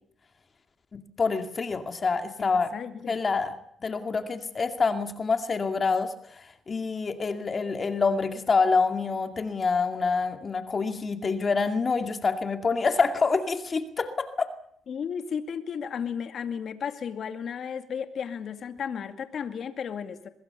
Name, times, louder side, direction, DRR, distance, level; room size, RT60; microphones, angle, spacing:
voice 1, 0.9-2.7 3.1-3.6 3.8-14.5, left 4 dB, 35° left, 7 dB, 2.3 m, -26 dB
voice 2, 2.4-3.2 14.9-20.3, left 7 dB, 60° left, 9 dB, 2.3 m, -34 dB
24.0 x 20.5 x 7.0 m, 0.70 s
cardioid pair, 90°, 0 cm